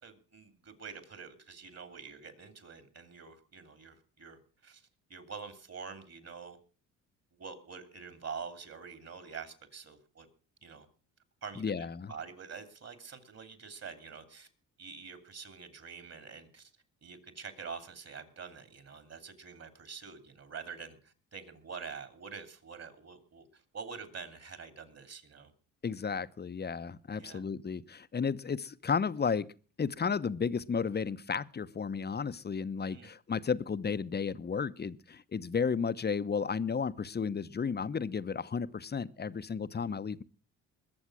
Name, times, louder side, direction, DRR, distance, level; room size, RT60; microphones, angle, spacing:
voice 1, 0.0-4.8 5.1-6.6 7.4-10.3 10.6-10.9 11.4-14.5 14.8-16.7 17.0-25.5 27.2-27.4 32.9-33.1, right 5 dB, 45° right, 3.3 m, -46 dB
voice 2, 11.6-12.1 25.8-29.5 29.8-40.2, left 6 dB, 30° left, 0.9 m, -33 dB
21.0 x 7.2 x 6.2 m
supercardioid pair, 65°, 35 cm